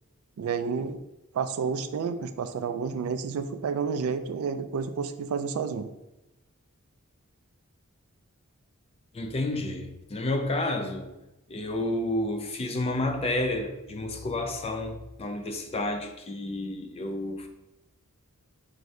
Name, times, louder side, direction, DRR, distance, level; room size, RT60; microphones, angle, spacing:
voice 1, 0.4-1.0 1.3-5.9, right 5 dB, 75° right, 0.3 m, -30 dB
voice 2, 9.1-11.1 11.5-17.5, left 2 dB, 30° left, 0.4 m, -30 dB
4.6 x 2.6 x 3.2 m
head